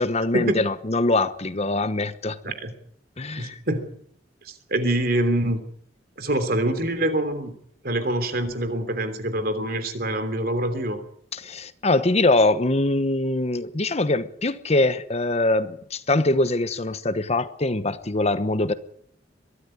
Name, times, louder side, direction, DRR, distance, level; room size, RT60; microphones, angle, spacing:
voice 1, 0.0-2.4 3.2-3.6 11.3-18.7, left 2 dB, 35° left, 1.1 m, -23 dB
voice 2, 3.4-3.9 4.4-5.6 6.2-7.5 7.8-11.0, right 1 dB, 55° right, 3.2 m, -25 dB
22.5 x 13.5 x 9.9 m
head